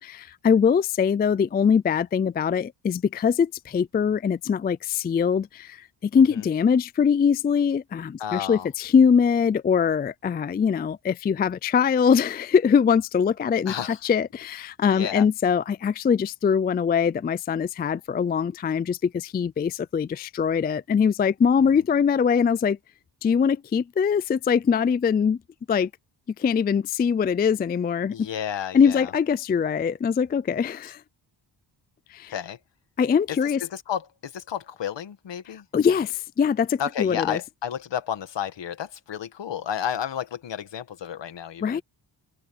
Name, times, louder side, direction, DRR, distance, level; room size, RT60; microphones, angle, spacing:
voice 1, 0.0-13.7 14.0-22.8 23.2-25.4 25.7-25.9 26.4-28.1 28.7-31.0 32.1-32.3 33.0-33.6 35.7-37.4 41.6-41.8, left 6 dB, 25° left, 0.3 m, -22 dB
voice 2, 8.2-8.7 13.7-14.0 14.9-15.3 28.1-29.1 30.8-30.9 32.3-32.6 33.3-35.7 36.8-41.8, left 9 dB, 70° left, 1.9 m, -32 dB
cardioid pair, 110°, 45 cm